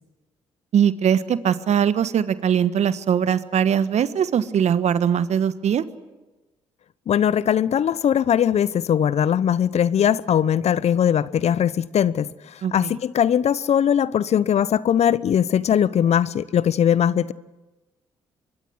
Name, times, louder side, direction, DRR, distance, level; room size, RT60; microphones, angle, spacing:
voice 1, 0.7-5.8 12.6-12.9, right 8 dB, 55° right, 1.3 m, -21 dB
voice 2, 7.1-17.3, left 9 dB, 55° left, 0.8 m, -20 dB
25.5 x 22.5 x 7.9 m
hypercardioid pair, 50°, 13 cm